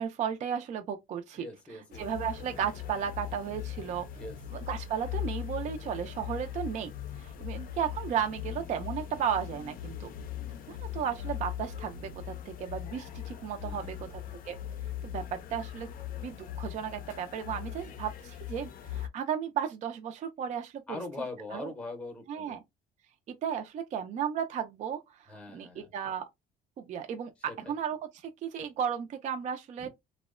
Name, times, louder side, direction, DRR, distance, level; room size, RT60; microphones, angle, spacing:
voice 1, 0.0-1.5 2.0-4.1 4.5-6.9 7.2-10.1 10.7-14.6 15.0-15.9 16.2-21.0 21.5-21.7 22.3-22.6 23.4-26.3 26.8-29.9, right 8 dB, 45° right, 0.4 m, -34 dB
voice 2, 1.3-2.1 4.2-4.4 13.6-14.4 20.9-22.6 25.3-25.9 27.5-27.8, left 2 dB, 5° left, 0.7 m, -42 dB
sound 1, 1.9-19.1, left 11 dB, 60° left, 0.4 m, -40 dB
2.7 x 2.1 x 2.4 m
cardioid pair, 110°, 17 cm